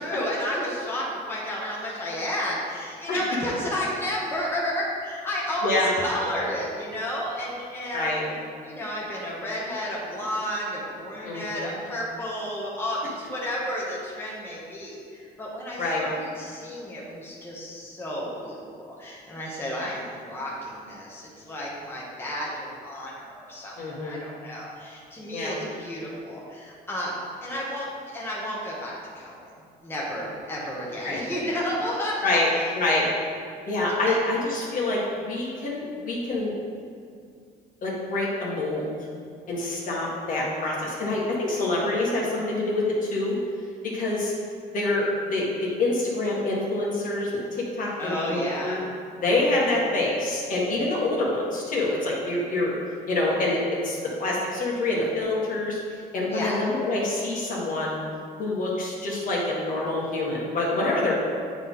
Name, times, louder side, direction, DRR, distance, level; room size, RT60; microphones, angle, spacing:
voice 1, 0.0-8.2 8.6-27.9 28.1-29.5 29.8-32.4 34.1-34.2 48.0-48.8 56.3-56.6, equal, 15° left, -6 dB, 1.4 m, -32 dB
voice 2, 7.9-8.3 11.2-11.7 15.8-16.1 23.8-24.2 25.3-25.6 31.0-31.2 32.2-32.5 32.7-33.1 33.7-36.5 37.8-38.9 39.5-43.3 43.8-44.3 44.7-48.8 49.1-52.7 53.1-55.8 56.1-58.0 58.4-61.1, left 2 dB, 55° left, -4 dB, 1.7 m, -26 dB
8.8 x 4.2 x 3.7 m, 2.3 s
cardioid pair, 110°, 17 cm